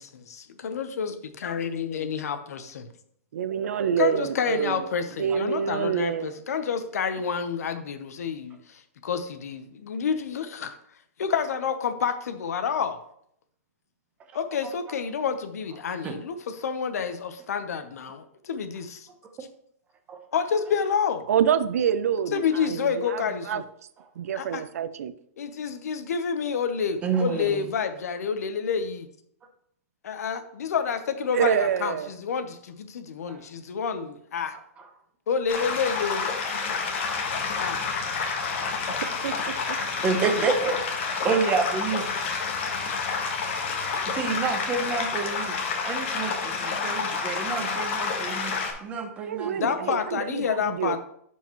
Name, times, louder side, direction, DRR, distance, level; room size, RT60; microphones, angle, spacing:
voice 1, 0.0-2.9 4.0-10.8 11.2-13.0 14.3-19.1 20.3-21.3 22.3-23.6 24.4-24.6 25.4-29.1 30.0-34.6 35.3-36.3 37.5-37.8 40.3-40.5 49.6-51.0, left 6 dB, 80° left, 9 dB, 0.9 m, -29 dB
voice 2, 3.3-4.9 5.2-6.4 21.3-23.6 24.2-25.1 31.3-32.1 38.9-39.3 39.7-39.8 49.2-51.0, right 8 dB, 70° right, 14 dB, 0.5 m, -27 dB
voice 3, 27.0-27.6 33.3-33.4 40.0-42.0 44.1-45.6 45.8-49.7, right 4 dB, 15° right, 5 dB, 0.8 m, -28 dB
sound 1, 35.5-48.7, left 5 dB, 50° left, 1.4 m, -29 dB
11.0 x 4.7 x 3.1 m, 0.69 s
hypercardioid pair, 170°, 8 cm